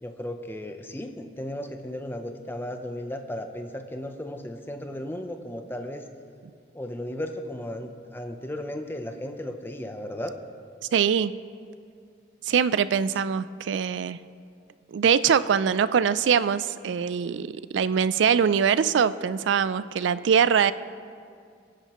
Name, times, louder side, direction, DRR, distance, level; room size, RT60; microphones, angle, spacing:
voice 1, 0.0-6.0 6.7-10.3, left 1 dB, 10° left, 6 dB, 0.7 m, -35 dB
voice 2, 10.9-11.3 12.5-14.2 14.9-17.5 17.7-20.7, right 7 dB, 80° right, 16 dB, 0.4 m, -22 dB
21.0 x 10.0 x 3.0 m, 2.2 s
head